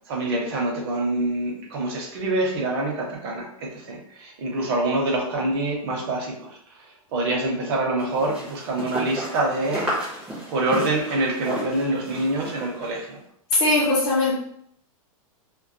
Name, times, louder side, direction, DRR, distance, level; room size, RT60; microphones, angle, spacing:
voice 1, 0.1-6.6 7.1-9.9 10.5-13.2, right 2 dB, 45° right, -1 dB, 0.7 m, -25 dB
sound 1, 8.0-13.0, equal, 5° right, 0.5 m, -33 dB
voice 2, 13.5-14.3, left 2 dB, 45° left, -5 dB, 0.7 m, -20 dB
2.3 x 2.2 x 2.6 m, 0.70 s
supercardioid pair, 160°, 18 cm